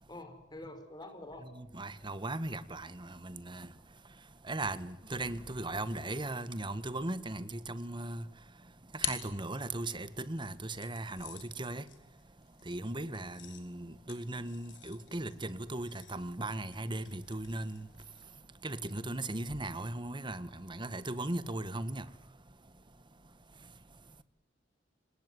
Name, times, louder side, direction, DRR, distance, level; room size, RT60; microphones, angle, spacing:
voice 1, 0.1-1.5, left 1 dB, 20° left, 5.2 m, -46 dB
voice 2, 1.5-3.7 4.5-8.3 8.9-11.8 12.7-17.9 18.6-22.1, right 2 dB, 25° right, 1.4 m, -38 dB
sound 1, 8.3-10.1 10.8-18.4, left 10 dB, 75° left, 4.0 m, -47 dB
26.5 x 20.5 x 9.5 m
head